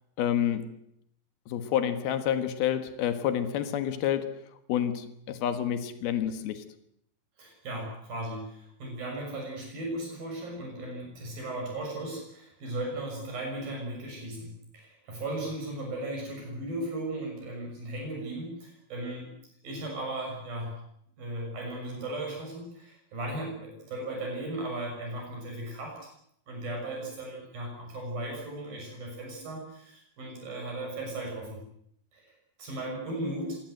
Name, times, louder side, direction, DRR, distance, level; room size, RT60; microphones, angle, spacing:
voice 1, 0.2-0.8 1.5-6.7, left 10 dB, 85° left, 3.4 m, -29 dB
voice 2, 7.4-19.3 19.6-20.8 21.2-26.0 26.5-31.6 32.1-32.3 32.6-33.6, right 1 dB, 70° right, 8.4 m, -36 dB
26.5 x 19.0 x 7.9 m
omnidirectional pair, 4.2 m